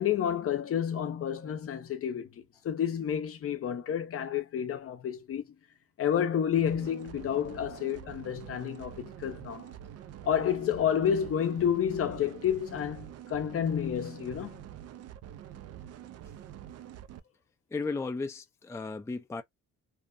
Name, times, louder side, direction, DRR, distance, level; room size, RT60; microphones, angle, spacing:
voice 1, 0.0-5.4 6.0-9.7 10.2-14.6, left 9 dB, 50° left, 0.6 m, -30 dB
sound 1, 6.6-17.2, right 11 dB, 55° right, 0.4 m, -46 dB
voice 2, 17.7-19.4, left 3 dB, 10° left, 0.4 m, -35 dB
2.8 x 2.1 x 2.4 m
cardioid pair, 90°, 30 cm